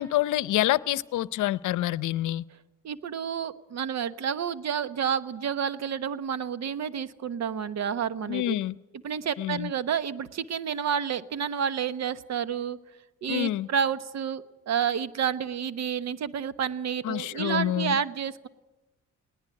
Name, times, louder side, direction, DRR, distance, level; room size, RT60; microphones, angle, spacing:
voice 1, 0.0-2.4 8.3-8.8 9.4-9.7 13.3-13.7 17.0-18.0, left 14 dB, 80° left, 19 dB, 0.7 m, -27 dB
voice 2, 2.8-8.5 9.0-12.8 13.2-18.5, right 7 dB, 60° right, 14 dB, 1.1 m, -30 dB
20.0 x 18.5 x 9.7 m, 1.0 s
cardioid pair, 90°, 30 cm